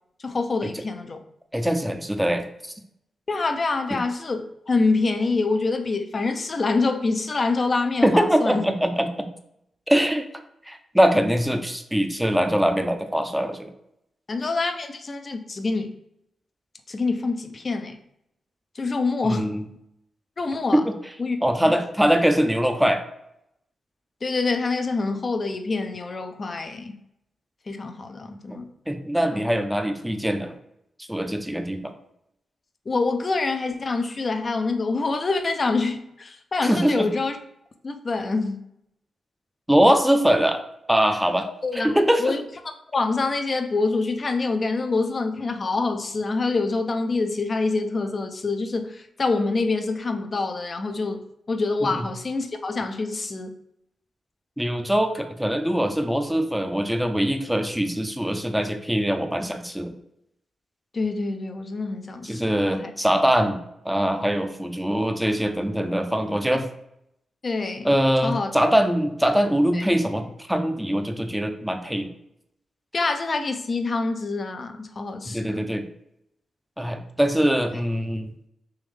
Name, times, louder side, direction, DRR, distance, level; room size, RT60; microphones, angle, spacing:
voice 1, 0.2-1.2 3.3-8.6 14.3-15.9 16.9-18.0 18.7-19.5 20.4-20.8 21.2-21.7 24.2-27.0 27.7-28.7 29.3-29.5 32.9-37.4 37.8-38.6 41.6-42.4 42.9-51.2 51.5-53.5 60.9-62.9 67.4-67.9 68.2-68.5 69.7-69.8 72.9-75.7 77.7-77.8, left 3 dB, 45° left, 6 dB, 0.5 m, -26 dB
voice 2, 1.5-2.5 3.9-4.0 8.0-9.3 9.9-10.2 10.7-13.7 19.2-19.6 20.7-20.9 21.4-23.0 28.9-30.5 31.1-31.9 36.6-37.1 39.7-40.6 40.9-41.5 41.7-42.3 51.9-52.0 54.6-59.9 62.2-66.7 67.8-72.1 75.3-75.8 76.8-78.3, equal, 5° right, 6 dB, 0.5 m, -22 dB
3.5 x 3.0 x 3.2 m, 0.80 s
cardioid pair, 55°, 0 cm